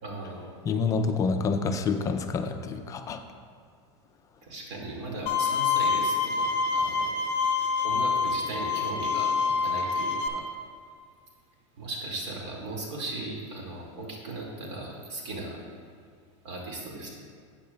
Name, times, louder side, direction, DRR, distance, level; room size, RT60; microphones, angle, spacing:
voice 1, 0.0-0.6 4.4-7.2 7.8-10.5 11.8-15.7 16.4-17.1, right 2 dB, 65° right, -1 dB, 2.1 m, -37 dB
voice 2, 0.6-3.2, left 4 dB, 20° left, 6 dB, 0.4 m, -27 dB
Bowed string instrument, 5.3-10.3, left 5 dB, 35° left, 0.9 m, -26 dB
12.0 x 8.6 x 2.3 m, 2.1 s
supercardioid pair, 150°, 16 cm